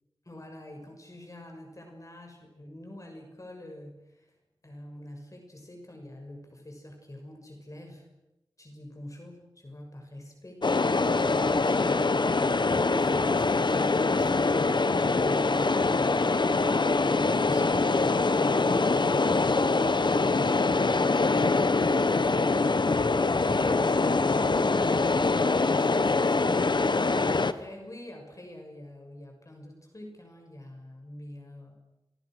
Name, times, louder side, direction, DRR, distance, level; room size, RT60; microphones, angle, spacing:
voice 1, 0.2-4.4 4.6-8.1 8.6-31.7, left 1 dB, 40° left, 3 dB, 6.6 m, -45 dB
sound 1, 10.6-27.5, left 3 dB, 60° left, 1.3 m, -24 dB
29.5 x 25.5 x 6.4 m, 0.92 s
wide cardioid pair, 70°, 9 cm